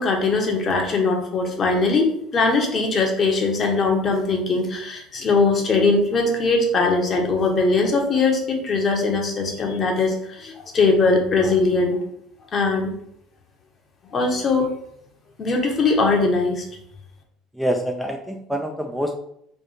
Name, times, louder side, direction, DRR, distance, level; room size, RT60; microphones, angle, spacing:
voice 1, 0.0-12.0 12.5-12.9 14.1-14.7 15.4-16.7, left 3 dB, 40° left, 2 dB, 1.1 m, -20 dB
voice 2, 17.6-19.1, equal, ahead, 3 dB, 0.5 m, -26 dB
3.4 x 2.6 x 4.1 m, 0.71 s
hypercardioid pair, 75°, 0 cm